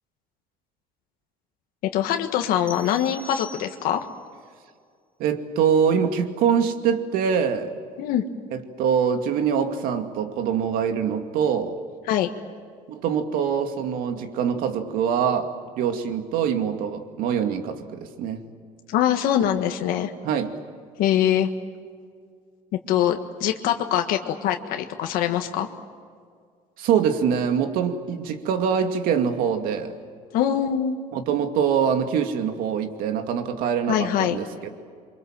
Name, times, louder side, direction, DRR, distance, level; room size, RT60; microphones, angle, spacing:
voice 1, 1.9-4.0 8.0-8.2 12.1-12.3 18.9-20.1 21.0-21.5 22.9-25.7 30.3-31.0 33.9-34.4, left 10 dB, 85° left, 5 dB, 1.5 m, -23 dB
sound 1, 2.7-4.2, left 2 dB, 10° left, 2.1 m, -43 dB
voice 2, 5.2-7.7 8.5-11.8 12.9-15.5 15.8-18.4 20.2-20.5 26.8-29.9 31.1-34.7, right 7 dB, 85° right, 6 dB, 2.4 m, -24 dB
28.0 x 24.0 x 7.5 m, 2.1 s
cardioid pair, 155°, 14 cm